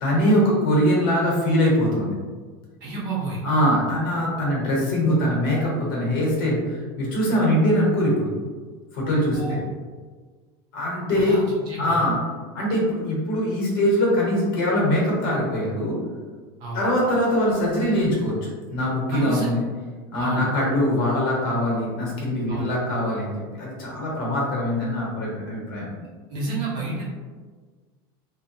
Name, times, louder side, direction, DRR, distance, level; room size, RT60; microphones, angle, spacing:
voice 1, 0.0-2.1 3.4-8.3 8.9-9.4 10.7-11.4 11.8-12.2 12.5-16.0 16.7-18.4 18.7-19.6 20.1-25.9, equal, 60° left, -3 dB, 1.0 m, -22 dB
voice 2, 2.8-3.4 9.3-9.6 11.1-12.0 16.6-16.8 19.1-19.5 20.2-20.4 22.5-22.7 26.3-27.0, right 3 dB, 40° right, -6 dB, 0.7 m, -30 dB
2.6 x 2.2 x 2.7 m, 1.5 s
supercardioid pair, 180°, 13 cm